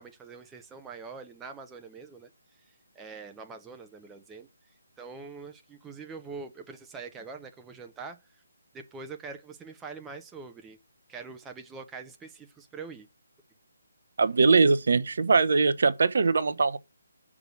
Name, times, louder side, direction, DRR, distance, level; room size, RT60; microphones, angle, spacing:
voice 1, 0.0-2.3 2.7-4.5 5.0-8.2 8.7-10.8 11.1-13.1, right 4 dB, 10° right, 0.7 m, -44 dB
voice 2, 14.2-16.8, right 4 dB, 50° right, 0.7 m, -22 dB
6.0 x 4.9 x 6.3 m
figure-of-eight pair, 145°, 0 cm